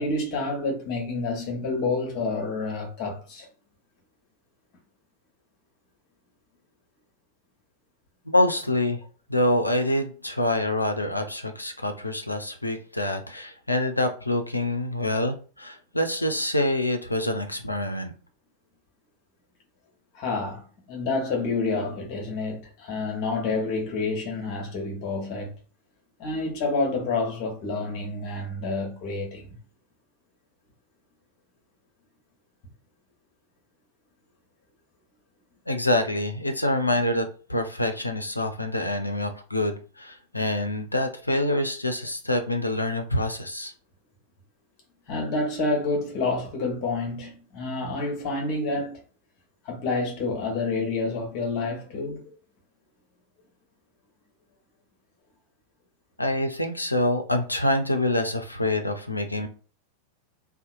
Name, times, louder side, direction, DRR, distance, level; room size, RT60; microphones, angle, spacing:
voice 1, 0.0-3.5 20.1-25.5 26.2-29.6 45.1-49.0 49.6-52.3, left 3 dB, 40° left, 0.9 m, -28 dB
voice 2, 8.3-9.0 9.3-18.1 35.7-43.7 56.2-59.5, left 1 dB, 85° left, 0.4 m, -26 dB
2.7 x 2.1 x 2.5 m
figure-of-eight pair, 90°, 0 cm